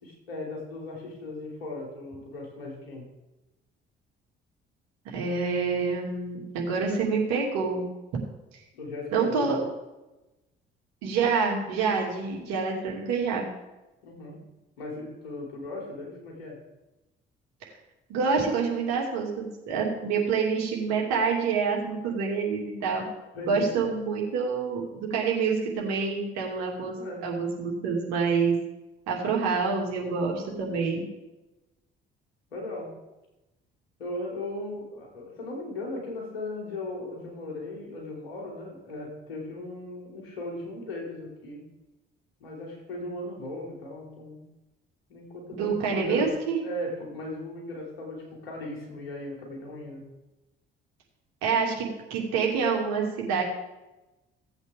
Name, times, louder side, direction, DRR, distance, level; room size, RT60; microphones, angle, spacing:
voice 1, 0.0-3.1 8.8-9.5 14.0-14.4 14.8-16.6 23.3-23.9 27.0-27.3 32.5-33.0 34.0-41.7 42.4-44.5 45.1-50.1, left 2 dB, 80° left, -2 dB, 3.0 m, -37 dB
voice 2, 5.0-7.9 9.1-9.6 11.0-13.5 17.6-17.7 18.1-23.1 23.5-27.0 27.2-28.6 29.1-31.0 45.5-46.6 51.4-53.4, right 5 dB, 65° right, -1 dB, 2.6 m, -27 dB
17.0 x 8.1 x 3.6 m, 1.0 s
figure-of-eight pair, 45°, 29 cm